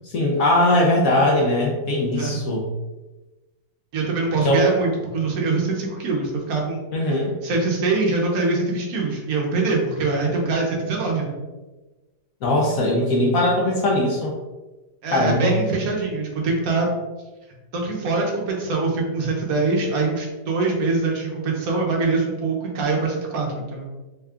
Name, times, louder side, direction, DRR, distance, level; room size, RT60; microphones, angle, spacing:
voice 1, 0.1-2.7 4.4-4.7 6.9-7.4 12.4-14.3 15.1-15.6, left 1 dB, 70° left, -2 dB, 0.8 m, -20 dB
voice 2, 3.9-6.8 7.4-11.3 15.0-16.9 17.7-23.9, right 3 dB, 60° right, -1 dB, 1.1 m, -23 dB
3.6 x 2.3 x 3.4 m, 1.2 s
omnidirectional pair, 2.0 m